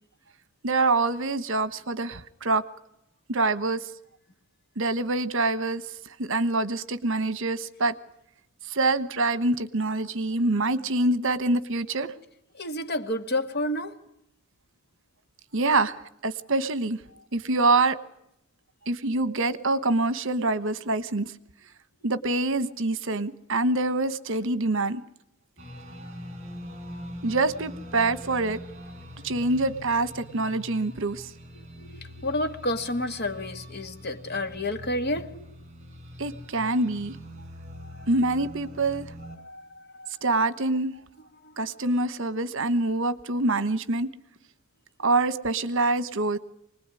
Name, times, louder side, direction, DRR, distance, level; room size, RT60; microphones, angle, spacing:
voice 1, 0.6-2.6 3.3-3.9 4.8-5.8 6.2-7.9 8.7-12.1 15.5-17.0 17.3-18.0 18.9-21.3 22.0-25.0 27.2-28.6 29.2-31.3 36.2-37.2 38.1-39.1 40.2-40.9 41.6-44.1 45.0-46.4, right 2 dB, 60° right, 14 dB, 1.3 m, -25 dB
voice 2, 12.6-14.0 31.8-35.5 37.8-38.1 39.4-40.1 41.4-41.5, left 1 dB, 45° left, 8 dB, 2.0 m, -30 dB
sound 1, 25.6-39.4, equal, 30° right, 7.5 m, -43 dB
25.5 x 20.0 x 9.8 m, 0.78 s
head